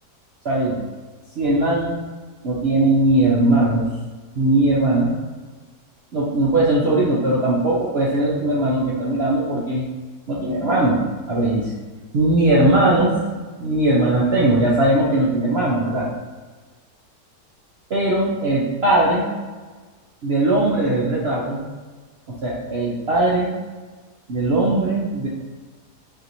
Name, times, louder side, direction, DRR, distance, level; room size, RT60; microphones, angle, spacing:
voice 1, 0.4-0.8 1.4-2.0 2.4-3.9 4.4-5.1 6.1-9.8 10.3-11.0 11.3-11.7 12.1-13.1 13.6-16.1 17.9-19.3 20.2-21.6 22.3-23.5 24.3-25.3, right 1 dB, 70° right, -5 dB, 0.6 m, -19 dB
5.3 x 2.9 x 2.6 m, 1.4 s
omnidirectional pair, 1.8 m